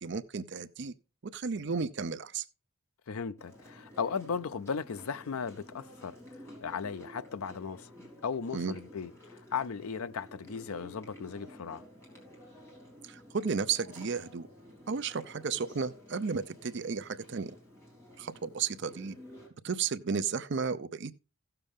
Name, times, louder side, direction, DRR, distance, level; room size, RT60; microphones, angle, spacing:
voice 1, 0.0-0.9 1.3-2.5 8.5-8.7 13.0-14.5 14.9-17.5 18.2-19.1 19.6-21.1, right 5 dB, 55° right, 0.5 m, -33 dB
voice 2, 3.1-6.2 6.6-7.9 8.2-11.8, left 6 dB, 80° left, 0.5 m, -36 dB
Chewing mastication, 3.4-19.5, left 1 dB, 10° left, 3.7 m, -52 dB
16.0 x 6.8 x 3.6 m
head